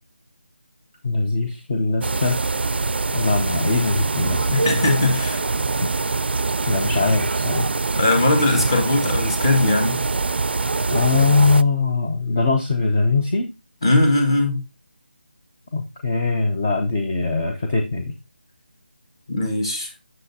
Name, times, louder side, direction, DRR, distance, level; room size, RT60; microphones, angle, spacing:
voice 1, 1.0-2.4 3.1-4.6 6.7-7.7 10.9-13.5 15.7-18.1, left 3 dB, 10° left, 0.3 m, -21 dB
sound 1, 2.0-11.6, right 3 dB, 85° right, 0.4 m, -24 dB
voice 2, 4.5-5.4 8.0-10.0 13.8-14.6 19.3-19.9, left 2 dB, 25° left, 1.5 m, -20 dB
7.5 x 6.5 x 2.6 m
figure-of-eight pair, 175°, 6 cm